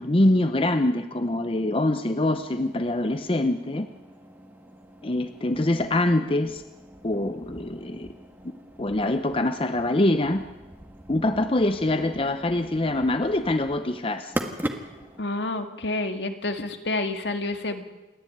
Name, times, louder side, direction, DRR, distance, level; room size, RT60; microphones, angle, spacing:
voice 1, 0.0-3.9 5.0-6.6 7.0-8.1 8.8-10.4 11.1-14.3, left 1 dB, 30° left, 9 dB, 0.7 m, -24 dB
sound 1, 2.4-15.2, right 1 dB, 10° right, 1.6 m, -41 dB
voice 2, 15.2-17.8, left 2 dB, 75° left, 6 dB, 1.9 m, -29 dB
28.0 x 10.5 x 9.3 m, 1.1 s
head